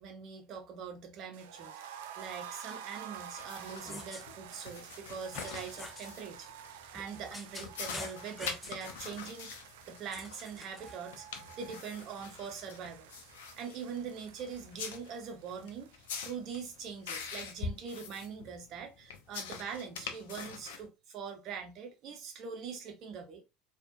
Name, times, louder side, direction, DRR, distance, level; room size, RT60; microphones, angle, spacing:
voice 1, 0.0-6.5 6.9-9.6 9.9-11.3 11.6-13.1 13.6-23.4, right 6 dB, 45° right, 1.0 m, -43 dB
sound 1, 1.3-17.2 17.4-17.5 17.8-17.9, right 8 dB, 65° right, 0.5 m, -50 dB
sound 2, 3.4-20.9, left 6 dB, 65° left, 0.6 m, -45 dB
sound 3, 3.8-4.2 5.3-6.1 6.9-8.9 10.1-11.0, left 2 dB, 15° left, 0.9 m, -45 dB
4.3 x 2.5 x 2.6 m
figure-of-eight pair, 70°, 0 cm